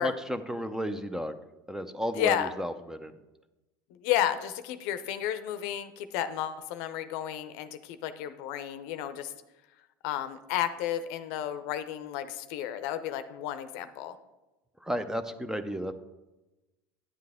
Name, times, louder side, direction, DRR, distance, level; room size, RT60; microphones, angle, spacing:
voice 1, 0.0-1.4 1.7-3.1 14.8-15.9, equal, 5° right, 11 dB, 0.6 m, -33 dB
voice 2, 2.1-2.5 3.9-9.3 10.0-14.2, left 11 dB, 65° left, 11 dB, 0.6 m, -32 dB
9.7 x 7.6 x 3.6 m, 1.0 s
hypercardioid pair, 85°, 11 cm